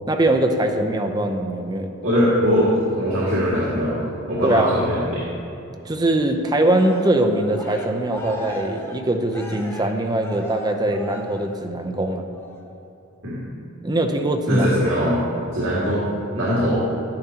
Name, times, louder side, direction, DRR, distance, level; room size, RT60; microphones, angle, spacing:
voice 1, 0.1-1.9 4.4-4.7 5.8-12.2 13.8-14.7, right 1 dB, 20° right, 4 dB, 0.6 m, -22 dB
voice 2, 2.0-5.2 13.2-13.4 14.5-15.2 15.5-16.8, equal, 75° right, -8 dB, 2.1 m, -21 dB
Cheering, 6.6-11.9 12.3-12.7, equal, 10° left, 0.7 m, -38 dB
11.0 x 10.5 x 2.9 m, 2.6 s
head